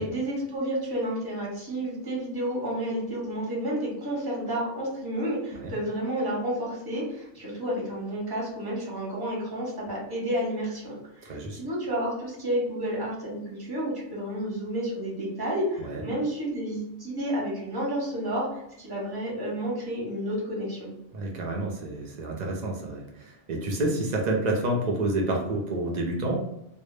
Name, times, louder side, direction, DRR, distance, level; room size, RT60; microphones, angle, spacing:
voice 1, 0.0-11.0 11.2-20.9, right 1 dB, 25° right, -4 dB, 0.8 m, -31 dB
voice 2, 11.2-11.6 15.8-16.0 21.1-26.4, right 2 dB, 55° right, 0 dB, 0.5 m, -29 dB
2.1 x 2.0 x 3.1 m, 0.82 s
omnidirectional pair, 1.2 m